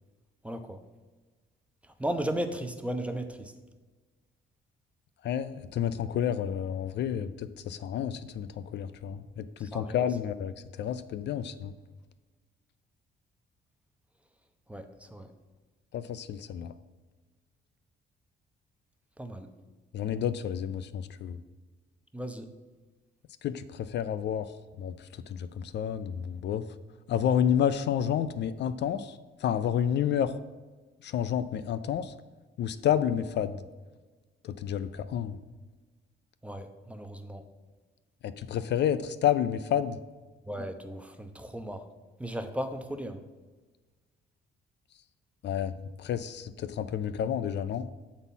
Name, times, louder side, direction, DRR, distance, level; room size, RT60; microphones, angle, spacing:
voice 1, 0.4-0.8 2.0-3.5 9.6-10.1 14.7-15.3 19.2-19.5 22.1-22.5 36.4-37.4 40.5-41.9 42.2-43.2, right 1 dB, 5° right, 7 dB, 0.6 m, -36 dB
voice 2, 5.2-10.5 10.8-11.7 15.9-16.7 19.9-21.4 23.4-24.5 24.8-26.6 27.1-30.4 31.0-32.1 32.6-33.6 34.4-35.4 38.2-40.0 45.4-47.9, left 9 dB, 60° left, 12 dB, 0.4 m, -30 dB
7.1 x 4.1 x 5.5 m, 1.3 s
cardioid pair, 90°, 20 cm